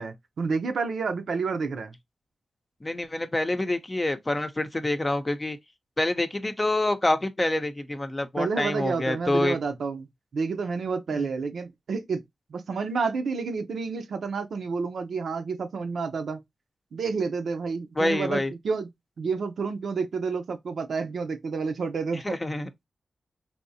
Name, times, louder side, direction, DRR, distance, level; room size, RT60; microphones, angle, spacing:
voice 1, 0.0-1.9 8.4-10.1 10.3-12.2 12.5-16.4 16.9-18.9 19.2-22.4, right 4 dB, 80° right, 0.6 m, -29 dB
voice 2, 2.8-5.6 6.0-9.6 11.1-11.3 18.0-18.5 22.2-22.7, left 1 dB, 30° left, 0.6 m, -27 dB
3.4 x 2.7 x 2.7 m
cardioid pair, 45°, 0 cm